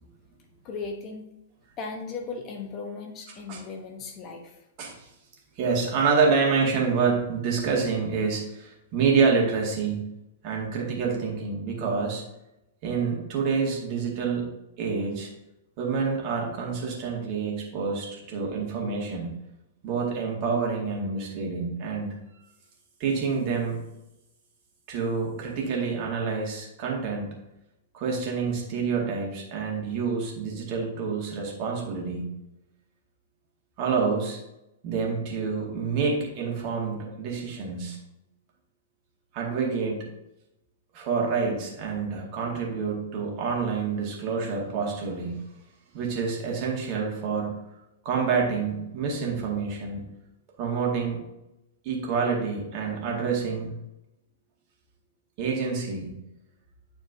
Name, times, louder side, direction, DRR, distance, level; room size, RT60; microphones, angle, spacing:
voice 1, 0.6-1.2 1.8-4.6, left 4 dB, 30° left, 3 dB, 1.0 m, -37 dB
voice 2, 5.6-10.1 10.4-12.2 12.8-14.5 14.8-15.3 15.8-19.3 19.8-22.2 23.0-23.8 24.9-27.3 27.9-32.3 33.8-34.4 34.8-38.0 39.3-40.1 40.9-45.4 45.9-47.6 48.0-50.1 50.6-51.2 51.8-53.7 55.4-56.1, right 5 dB, 40° right, -2 dB, 2.1 m, -27 dB
10.5 x 4.5 x 2.7 m, 0.90 s
figure-of-eight pair, 105°, 0 cm